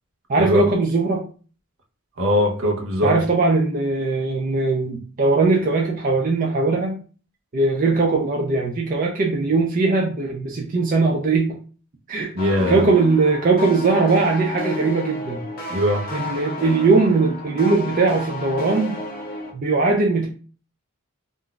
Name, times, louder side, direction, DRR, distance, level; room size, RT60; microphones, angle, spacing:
voice 1, 0.3-1.2 3.0-7.0 7.5-11.6 12.1-12.3 12.7-15.4 16.1-19.0 19.5-20.3, right 3 dB, 35° right, 0.4 m, -20 dB
voice 2, 2.2-3.2 12.3-12.8 15.7-16.0, left 1 dB, 65° right, 0.7 m, -21 dB
Modular synth loop, 12.4-19.5, left 2 dB, 40° left, 0.6 m, -32 dB
2.5 x 2.2 x 3.7 m
head